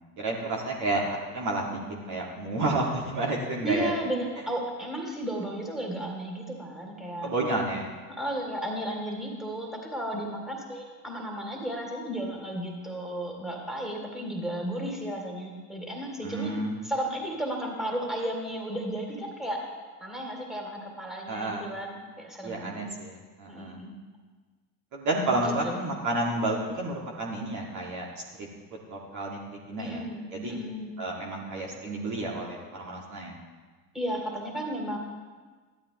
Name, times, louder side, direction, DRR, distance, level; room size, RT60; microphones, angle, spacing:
voice 1, 0.0-3.9 7.2-7.8 16.2-16.7 21.3-21.7 22.4-23.8 24.9-28.1 28.4-28.5 28.9-30.0 30.3-30.5 31.0-33.4, right 2 dB, 35° right, -2 dB, 2.1 m, -30 dB
voice 2, 3.6-7.3 8.1-16.6 16.8-19.6 20.0-23.0 23.5-23.9 25.4-25.8 29.8-30.9 33.9-35.0, right 1 dB, ahead, 0 dB, 2.8 m, -34 dB
15.0 x 12.0 x 3.1 m, 1.4 s
hypercardioid pair, 80°, 48 cm